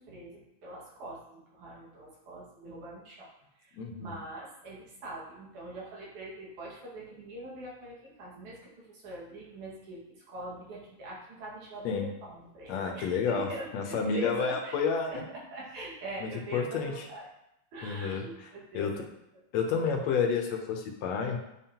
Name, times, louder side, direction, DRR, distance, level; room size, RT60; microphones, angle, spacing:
voice 1, 0.0-3.3 3.6-11.9 12.2-14.8 15.1-17.3 17.7-19.1, right 1 dB, 85° right, -4 dB, 3.3 m, -43 dB
voice 2, 3.7-4.1 11.9-12.1 12.7-13.5 13.7-15.3 16.2-17.1 17.8-19.0 19.5-21.4, left 5 dB, 70° left, 3 dB, 1.9 m, -30 dB
9.3 x 5.4 x 2.9 m, 0.83 s
omnidirectional pair, 3.3 m